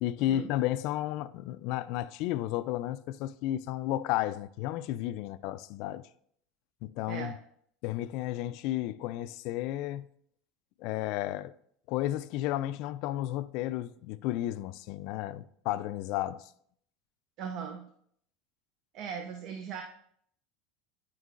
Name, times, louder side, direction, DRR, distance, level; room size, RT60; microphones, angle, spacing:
voice 1, 0.0-6.0 6.8-7.3 7.8-10.1 10.8-11.5 11.9-16.5, left 14 dB, 60° left, 0.3 m, -33 dB
voice 2, 17.4-17.9 18.9-19.8, right 7 dB, 55° right, 0.6 m, -38 dB
9.5 x 4.5 x 2.5 m
supercardioid pair, 130°, 0 cm